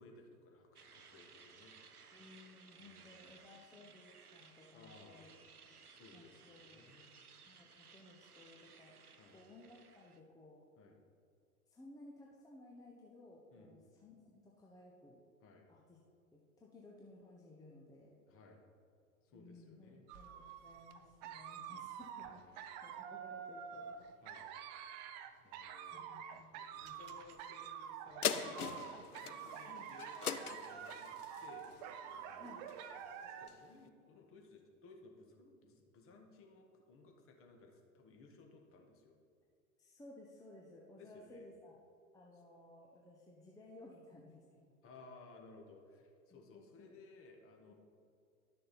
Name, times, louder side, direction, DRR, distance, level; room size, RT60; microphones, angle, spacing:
voice 1, 0.0-1.7 2.8-3.5 4.7-5.5 5.8-7.2 9.2-9.4 10.8-11.0 13.5-13.8 15.4-15.7 18.3-18.6 19.2-20.1 22.4-22.8 24.2-24.5 25.4-26.1 26.5-31.1 31.4-31.7 32.1-32.8 33.2-39.2 41.0-41.5 44.8-47.7, left 3 dB, 30° left, 2 dB, 1.6 m, -60 dB
sound 1, 0.8-10.2, right 5 dB, 85° right, 0.8 m, -60 dB
voice 2, 2.1-5.3 5.6-5.8 6.1-6.8 7.5-9.0 9.3-10.7 11.7-15.2 15.7-16.0 16.3-18.2 19.3-24.0 25.9-27.1 29.7-29.9 32.4-32.7 39.8-41.8 42.1-44.7 46.3-47.0 47.7-47.8, left 2 dB, 10° left, -3 dB, 0.8 m, -58 dB
sound 2, 20.1-33.5, right 8 dB, 30° right, 0.5 m, -48 dB
sound 3, 28.2-33.0 33.5-33.6, left 7 dB, 85° left, 0.6 m, -41 dB
11.5 x 6.5 x 4.2 m, 2.3 s
figure-of-eight pair, 95°, 44 cm